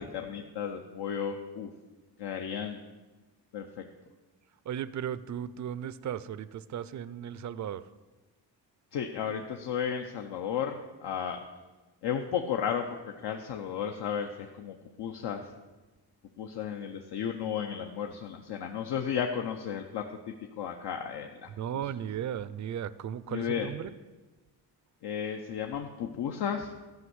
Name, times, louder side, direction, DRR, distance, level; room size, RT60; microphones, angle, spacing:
voice 1, 0.0-1.7 2.2-2.8 3.5-3.8 8.9-11.4 12.0-15.5 16.4-21.5 23.3-23.7 25.0-26.7, left 8 dB, 70° left, 4 dB, 0.8 m, -34 dB
voice 2, 4.7-7.8 21.6-23.9, right 9 dB, 45° right, 17 dB, 0.4 m, -36 dB
13.0 x 5.4 x 7.9 m, 1.2 s
wide cardioid pair, 150°, 42 cm